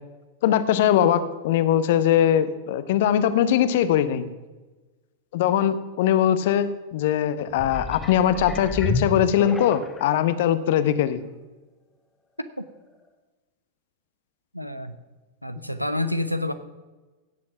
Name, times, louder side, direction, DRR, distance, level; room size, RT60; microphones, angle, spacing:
voice 1, 0.4-4.3 5.3-11.2, left 10 dB, 55° left, 13 dB, 0.9 m, -21 dB
sound 1, 7.5-10.1 10.8-10.9, left 2 dB, 10° left, 1.6 m, -31 dB
voice 2, 14.5-15.0 15.4-16.5, left 1 dB, 90° right, 12 dB, 0.8 m, -28 dB
17.0 x 7.6 x 5.8 m, 1.2 s
figure-of-eight pair, 90°, 0 cm